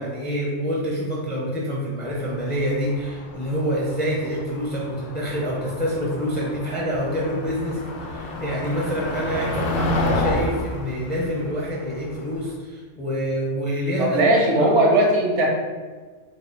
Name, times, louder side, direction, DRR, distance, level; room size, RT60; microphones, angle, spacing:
voice 1, 0.0-14.7, equal, 10° left, -4 dB, 0.6 m, -27 dB
Motor vehicle (road), 2.2-12.5, left 2 dB, 55° left, 0.7 m, -30 dB
voice 2, 14.0-15.5, right 1 dB, 65° right, -1 dB, 1.1 m, -18 dB
3.2 x 2.8 x 4.4 m, 1.4 s
omnidirectional pair, 1.3 m